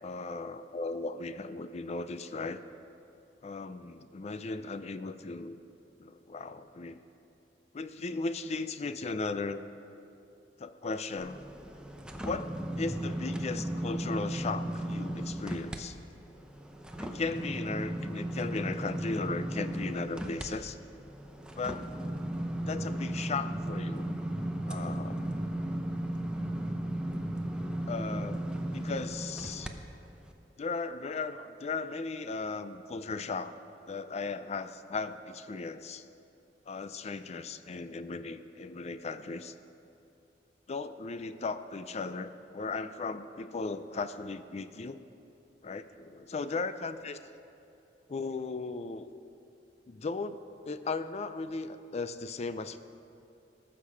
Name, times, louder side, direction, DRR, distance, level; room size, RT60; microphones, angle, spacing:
voice 1, 0.0-2.6 3.4-5.6 6.0-7.0 7.7-9.6 10.6-11.4 12.2-16.0 17.0-20.8 21.6-21.8 22.7-24.1 24.7-25.3 27.9-28.4 28.7-29.7 30.6-33.6 33.9-36.0 36.7-39.5 40.7-45.0 45.6-47.2 48.1-49.1 49.9-50.4 50.6-52.8, left 3 dB, 40° left, 12 dB, 0.4 m, -36 dB
sound 1, 11.2-15.8 16.2-29.7 30.2-30.3, right 1 dB, 5° right, 0.7 m, -35 dB
18.5 x 6.7 x 5.0 m, 2.7 s
head